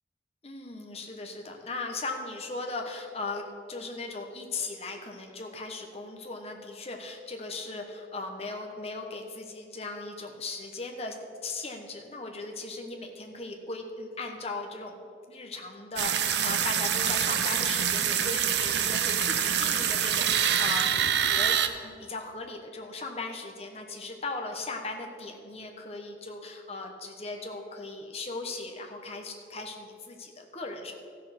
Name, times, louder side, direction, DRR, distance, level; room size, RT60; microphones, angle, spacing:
voice 1, 0.4-11.2 11.4-15.0 15.3-30.9, left 3 dB, 35° left, 2 dB, 1.1 m, -38 dB
sound 1, 16.0-21.7, right 8 dB, 80° right, 0.7 m, -26 dB
14.0 x 6.6 x 5.8 m, 2.4 s
head